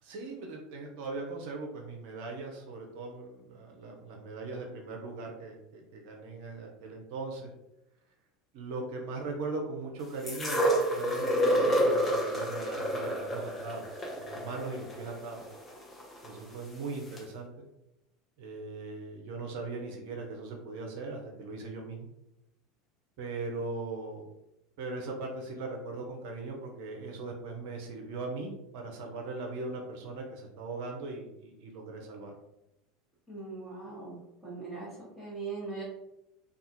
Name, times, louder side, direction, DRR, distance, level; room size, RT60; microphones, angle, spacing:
voice 1, 0.0-7.5 8.5-13.9 14.2-15.4 16.2-17.7 18.4-22.1 23.2-24.3 24.8-32.3, right 3 dB, 60° right, 2 dB, 0.5 m, -39 dB
sound 1, 10.3-16.3 17.2-17.3, equal, 25° left, 0.7 m, -29 dB
voice 2, 33.3-34.9 35.2-35.8, right 4 dB, 10° left, -9 dB, 1.1 m, -40 dB
2.4 x 2.3 x 2.8 m, 0.87 s
hypercardioid pair, 80°, 0 cm